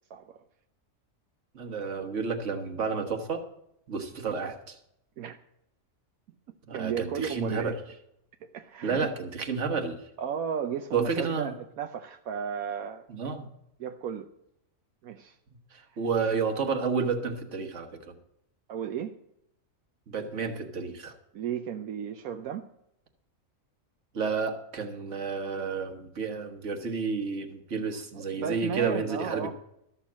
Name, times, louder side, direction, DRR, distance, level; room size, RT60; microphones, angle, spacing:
voice 1, 0.1-0.4 5.2-5.4 6.7-7.8 8.4-9.1 10.2-13.1 13.8-14.3 15.0-15.4 15.9-16.0 18.7-19.1 21.3-22.7 28.1-29.5, right 8 dB, 80° right, 7 dB, 1.1 m, -34 dB
voice 2, 1.5-3.4 3.9-4.8 6.7-7.7 8.8-10.0 10.9-11.5 13.1-13.5 15.7-18.2 20.1-21.1 24.1-29.5, right 5 dB, 60° right, 4 dB, 1.7 m, -31 dB
13.0 x 7.1 x 7.3 m, 0.78 s
omnidirectional pair, 1.5 m